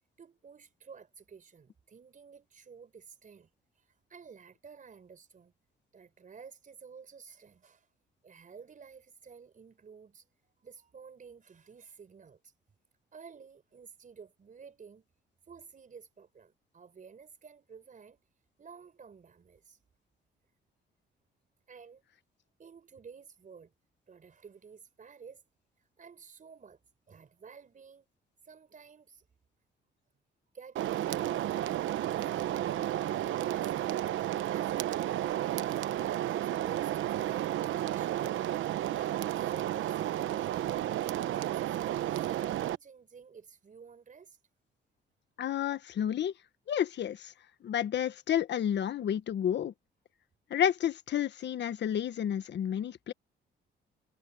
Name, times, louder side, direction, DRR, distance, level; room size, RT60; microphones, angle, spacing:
voice 1, 0.2-5.5 5.9-7.9 8.2-12.5 13.1-15.0 15.4-18.2 18.6-19.8 21.7-22.1 22.6-23.7 24.1-25.4 25.8-26.8 27.1-28.1 28.4-29.2 30.5-31.3 31.6-35.9 36.3-38.5 39.0-44.4, right 6 dB, 40° right, 5.1 m, -52 dB
sound 1, 30.8-42.8, right 12 dB, 75° right, 0.9 m, -32 dB
voice 2, 45.4-46.3 46.7-47.3 47.6-49.7 50.5-53.1, left 9 dB, 60° left, 1.4 m, -30 dB
cardioid pair, 90°, 20 cm